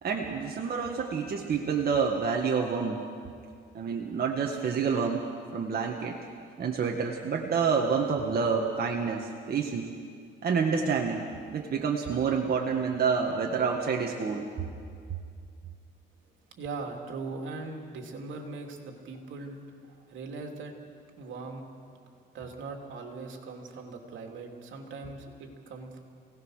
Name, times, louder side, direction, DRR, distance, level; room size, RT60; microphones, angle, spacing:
voice 1, 0.0-3.0 3.7-5.3 5.5-6.2 6.6-9.9 10.4-11.3 11.5-14.5, right 5 dB, 50° right, 1 dB, 1.8 m, -28 dB
voice 2, 16.6-20.7 21.2-21.7 22.3-26.0, right 3 dB, 75° right, 2 dB, 3.0 m, -40 dB
27.5 x 18.0 x 6.5 m, 2.3 s
cardioid pair, 90°, 20 cm